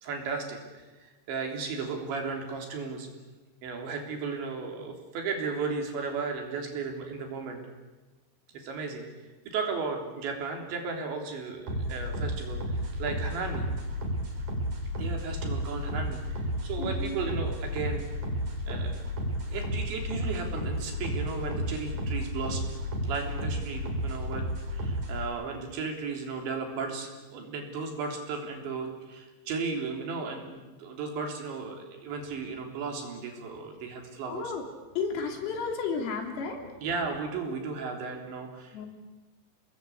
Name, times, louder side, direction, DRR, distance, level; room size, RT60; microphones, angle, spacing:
voice 1, 0.0-3.1 3.6-7.6 8.5-9.1 9.5-12.6 13.0-13.7 15.0-18.0 18.7-19.0 19.5-22.7 23.1-24.5 24.7-34.4 36.8-38.9, right 4 dB, 60° right, 2 dB, 5.5 m, -35 dB
sound 1, 11.7-25.3, equal, 40° right, 5.1 m, -32 dB
voice 2, 16.8-17.2 34.3-34.7 35.0-36.6 38.7-38.9, left 5 dB, 80° left, 2 dB, 6.3 m, -32 dB
29.5 x 20.0 x 8.5 m, 1.2 s
omnidirectional pair, 5.9 m